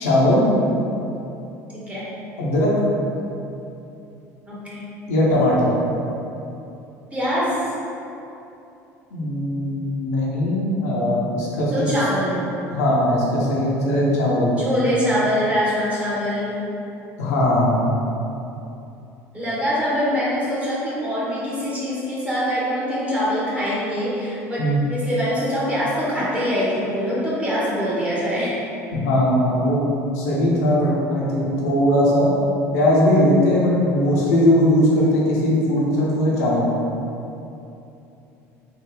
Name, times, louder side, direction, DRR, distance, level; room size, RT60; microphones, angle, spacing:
voice 1, 0.0-0.4 2.4-2.7 5.1-5.7 9.1-11.7 12.7-14.5 17.2-17.9 24.6-24.8 28.9-29.9 30.1-32.3 32.7-36.7, left 1 dB, 80° left, -5 dB, 0.8 m, -19 dB
voice 2, 1.7-2.1 4.5-4.9 7.1-7.6 11.7-12.4 14.6-16.6 19.3-28.6, equal, 15° right, -8 dB, 1.3 m, -24 dB
3.6 x 2.4 x 3.3 m, 2.9 s
hypercardioid pair, 75°, 8 cm